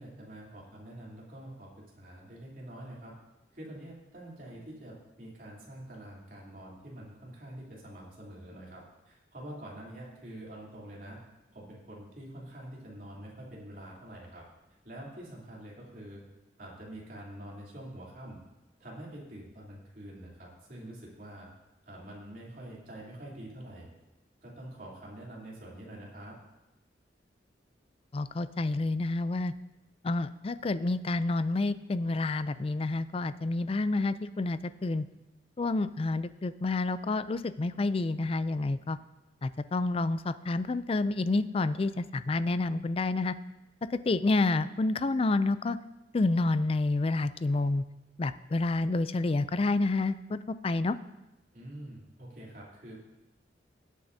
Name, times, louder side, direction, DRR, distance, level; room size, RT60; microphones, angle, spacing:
voice 1, 0.0-3.1 3.5-11.2 11.5-14.4 14.8-16.2 16.6-18.4 18.8-21.5 21.8-23.9 24.4-26.4 51.5-53.0, right 1 dB, 50° right, -4 dB, 3.2 m, -46 dB
voice 2, 28.1-29.5 30.0-35.0 35.6-39.0 39.4-43.3 44.1-45.8 46.1-47.8 48.2-51.0, left 2 dB, 30° left, 14 dB, 0.4 m, -29 dB
18.5 x 8.3 x 2.7 m, 0.99 s
head